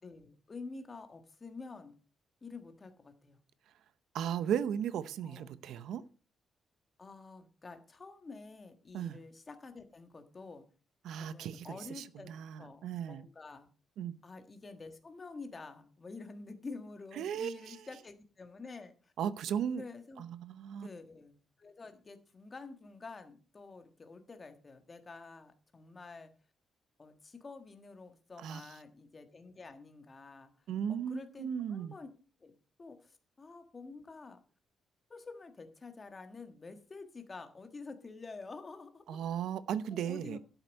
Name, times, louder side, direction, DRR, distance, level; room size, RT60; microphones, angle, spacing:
voice 1, 0.0-1.9 2.4-3.4 5.2-5.6 7.0-10.6 11.2-12.3 12.6-13.7 14.2-19.1 19.8-20.2 20.8-26.3 27.0-30.5 30.9-32.1 32.4-34.4 35.1-39.2 39.9-40.4, left 3 dB, 20° left, 1.4 m, -49 dB
voice 2, 4.1-6.0 8.9-9.2 11.0-13.3 14.0-14.2 17.2-17.9 19.2-19.8 20.2-20.9 28.4-28.7 30.7-31.9 39.1-40.4, right 9 dB, 80° right, 0.7 m, -36 dB
12.5 x 8.0 x 5.3 m
cardioid pair, 180°, 0 cm